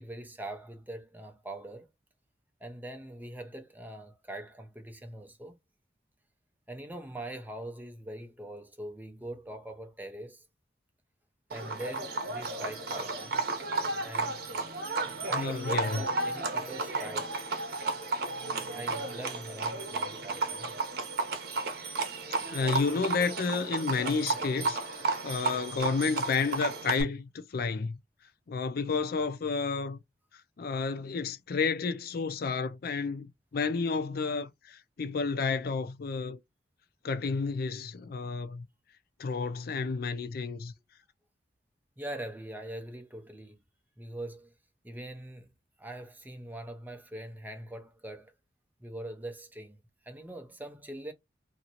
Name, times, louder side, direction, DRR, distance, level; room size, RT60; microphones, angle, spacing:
voice 1, 0.0-1.9 2.6-5.6 6.7-10.4 11.5-13.4 14.0-14.4 15.2-17.4 18.6-20.7 42.0-43.6 44.0-44.5 44.8-45.5 45.8-48.3 48.8-49.8 50.0-51.1, right 1 dB, 10° right, 0.6 m, -42 dB
Livestock farm animals working animals, 11.5-27.0, right 3 dB, 60° right, 0.8 m, -33 dB
voice 2, 15.3-16.0 22.5-24.8 25.2-28.0 28.5-30.0 30.6-36.4 37.0-38.7 39.2-40.7, left 4 dB, 60° left, 0.4 m, -31 dB
2.8 x 2.7 x 2.8 m
head